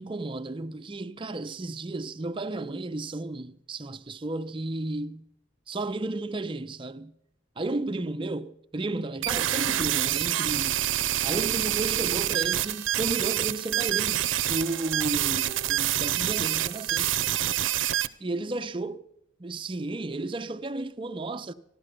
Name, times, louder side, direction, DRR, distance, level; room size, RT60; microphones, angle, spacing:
voice 1, 0.0-5.3 5.7-7.1 7.6-10.8 11.2-17.1 18.2-19.0 19.4-21.5, right 2 dB, 25° right, 0.5 m, -33 dB
sound 1, 9.2-18.1, right 12 dB, 90° right, 0.5 m, -27 dB
15.0 x 12.0 x 5.1 m
head